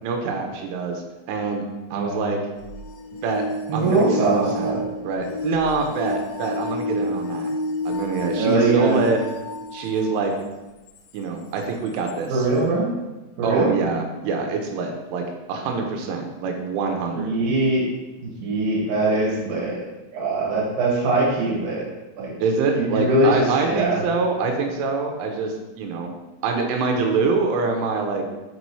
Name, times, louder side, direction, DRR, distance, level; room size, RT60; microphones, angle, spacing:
voice 1, 0.0-1.0 1.3-1.6 1.9-2.4 3.2-3.4 3.7-4.7 5.0-7.5 7.9-9.2 9.7-10.3 11.1-12.5 13.4-17.4 22.4-26.1 26.4-28.3, right 4 dB, 85° right, 3 dB, 3.2 m, -25 dB
voice 2, 1.9-2.3 3.7-4.8 8.4-9.0 12.3-12.9 13.4-13.7 17.1-17.9 18.2-19.8 20.1-21.9 22.2-22.3 22.7-24.0, right 2 dB, 55° right, -5 dB, 2.5 m, -22 dB
sound 1, 2.6-10.3 11.0-11.1 12.1-12.2, left 1 dB, 80° left, 2.7 m, -30 dB
6.2 x 5.3 x 3.1 m, 1.1 s
omnidirectional pair, 5.5 m